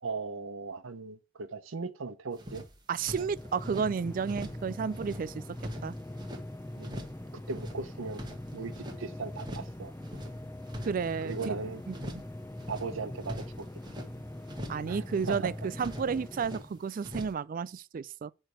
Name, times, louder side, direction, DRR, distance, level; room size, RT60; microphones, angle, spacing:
voice 1, 0.0-2.6 6.8-7.0 7.5-8.2 8.5-8.7 9.0-9.9 11.2-11.8 12.7-13.7 14.9-15.5, right 4 dB, 85° right, 0.8 m, -38 dB
sound 1, 2.4-3.9 4.2-4.7 4.9-6.4 6.8-7.2 7.5-9.0 9.3-9.8 10.0-11.5 11.9-12.3 12.6-14.1 14.5-14.9 15.1-16.7 17.0-17.3, equal, 20° right, 1.4 m, -43 dB
voice 2, 2.9-5.4 5.8-6.0 10.8-11.6 11.9-12.2 14.7-15.5 15.8-18.3, right 6 dB, 45° right, 0.3 m, -32 dB
sound 2, 3.0-16.8, left 1 dB, 15° left, 0.5 m, -42 dB
8.9 x 3.3 x 6.7 m
head